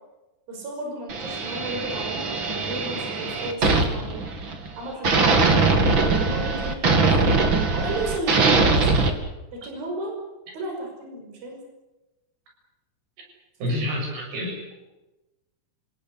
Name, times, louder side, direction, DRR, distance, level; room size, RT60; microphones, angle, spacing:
voice 1, 0.5-4.2 4.8-5.7 6.0-7.3 7.7-8.9 9.5-10.1 10.5-11.6, right 2 dB, 65° right, 1 dB, 7.6 m, -33 dB
sound 1, 1.1-4.7 5.0-9.1, right 3 dB, 35° right, 2.6 m, -22 dB
voice 2, 13.6-14.7, left 1 dB, 90° right, 1 dB, 9.0 m, -28 dB
30.0 x 18.5 x 8.4 m, 1.0 s
omnidirectional pair, 4.5 m